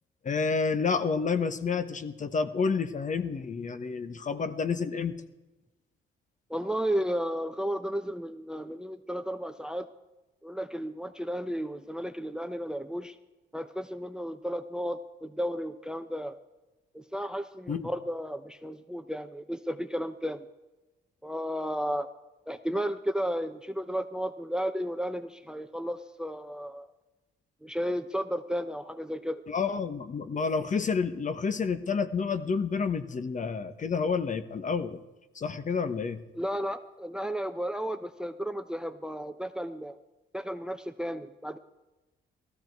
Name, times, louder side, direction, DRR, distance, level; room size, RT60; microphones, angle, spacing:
voice 1, 0.2-5.1 17.7-17.9 29.5-35.0 35.3-36.2, left 5 dB, 40° left, 11 dB, 1.1 m, -29 dB
voice 2, 6.5-9.9 10.4-13.2 13.5-16.4 16.9-20.5 21.2-22.1 22.5-26.9 27.6-29.4 36.3-40.0 40.3-41.6, equal, 5° right, 10 dB, 0.7 m, -33 dB
17.0 x 14.0 x 4.6 m, 1.1 s
cardioid pair, 90°, 20 cm